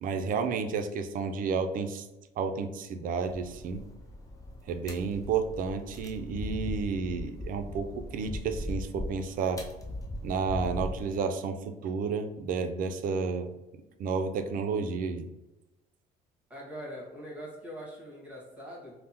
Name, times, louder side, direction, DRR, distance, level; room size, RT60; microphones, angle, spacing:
voice 1, 0.0-2.1 2.4-3.8 4.7-9.6 10.2-13.5 14.0-15.3, right 5 dB, 55° right, 8 dB, 0.4 m, -31 dB
sound 1, 3.3-11.2, left 1 dB, 20° left, 0.5 m, -39 dB
voice 2, 16.5-18.9, equal, 10° right, -4 dB, 1.3 m, -42 dB
3.4 x 2.0 x 2.8 m, 1.0 s
cardioid pair, 110°, 17 cm